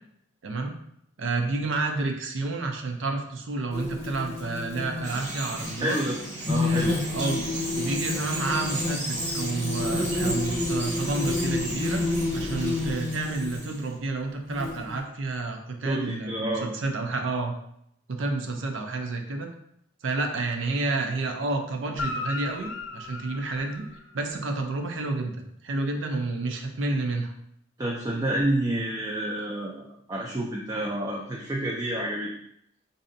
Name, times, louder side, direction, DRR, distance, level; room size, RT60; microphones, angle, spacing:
voice 1, 0.4-0.8 1.2-6.0 6.6-17.5 18.1-19.5 20.0-23.8 24.1-27.3, right 3 dB, 75° right, 4 dB, 0.5 m, -30 dB
sound 1, 3.7-5.1 5.6-5.8 6.5-13.7 14.5-15.0, left 2 dB, 35° left, 0.9 m, -30 dB
Bird vocalization bird call bird song, 5.0-13.9, right 1 dB, 35° right, 0.8 m, -35 dB
voice 2, 5.8-6.2 6.5-6.9 15.9-16.7 27.8-32.3, right 1 dB, 20° right, -3 dB, 0.4 m, -29 dB
Guitar, 21.9-24.5 28.3-28.4, left 3 dB, 70° left, 0.4 m, -36 dB
4.1 x 2.7 x 2.6 m, 0.73 s
head